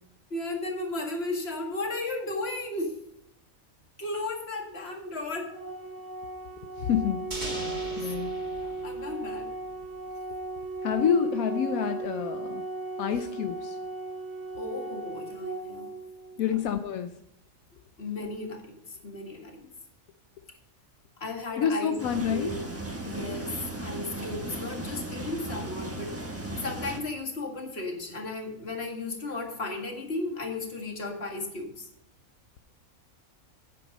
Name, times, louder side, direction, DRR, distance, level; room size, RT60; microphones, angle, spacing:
voice 1, 0.3-3.0 4.0-5.5 7.8-8.1 8.6-9.5 14.6-15.9 18.0-19.6 21.2-21.9 22.3-22.6 23.0-23.5 23.8-31.9, left 2 dB, 45° left, 2 dB, 2.1 m, -35 dB
Organ, 5.5-16.5, right 2 dB, 65° right, 1.9 m, -36 dB
voice 2, 6.8-7.3 8.0-8.3 10.8-12.6 13.0-13.8 16.4-17.2 21.6-22.5, left 8 dB, 85° left, 8 dB, 1.1 m, -28 dB
sound 1, 7.3-10.1, right 1 dB, 30° right, 2.2 m, -40 dB
sound 2, 22.0-27.0, right 1 dB, 10° right, 1.1 m, -36 dB
9.7 x 7.9 x 5.2 m, 0.76 s
omnidirectional pair, 1.4 m